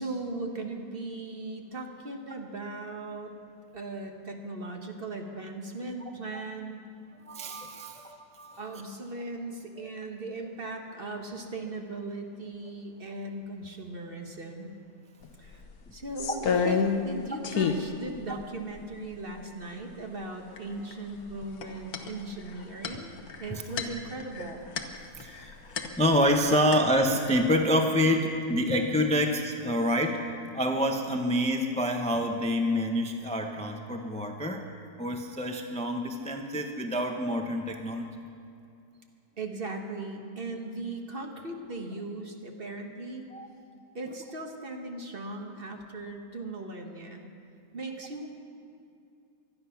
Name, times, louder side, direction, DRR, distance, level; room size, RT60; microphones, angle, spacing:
voice 1, 0.0-3.3 3.7-6.8 8.6-14.7 15.4-15.6 15.9-24.6 39.4-43.3 43.9-47.2 47.7-48.3, right 2 dB, 35° right, 3 dB, 1.4 m, -38 dB
voice 2, 7.3-8.8 9.8-9.9 23.5-23.6 25.2-25.5 26.0-30.2 30.5-34.6 35.0-38.1 43.3-43.5, equal, 10° left, 3 dB, 0.3 m, -27 dB
sound 1, 15.2-15.3 15.6-17.2 17.4-17.9 18.4-18.5 18.8-19.5 20.6-20.9 21.2-26.4 26.7-27.5, left 6 dB, 65° left, 1.4 m, -30 dB
25.0 x 9.7 x 5.8 m, 2.6 s
omnidirectional pair, 1.8 m